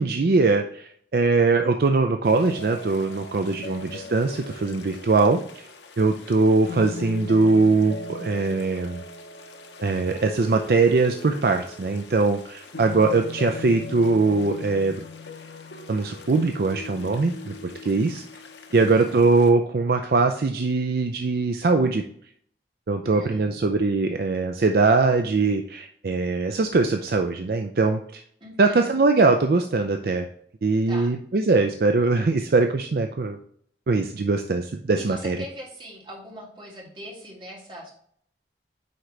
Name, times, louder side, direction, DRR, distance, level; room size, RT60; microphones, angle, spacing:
voice 1, 0.0-5.4 6.0-9.0 9.8-14.9 15.9-18.2 18.7-22.0 22.9-28.2 28.6-30.3 30.6-33.4 33.9-35.4, right 3 dB, 55° right, 5 dB, 0.4 m, -21 dB
sound 1, 2.2-19.5, left 2 dB, 90° left, 0.9 m, -39 dB
voice 2, 3.4-4.1 18.7-19.2 23.0-23.5 28.4-28.9 30.9-31.1 35.0-37.9, equal, 30° right, -4 dB, 2.3 m, -41 dB
9.3 x 3.9 x 3.2 m, 0.64 s
head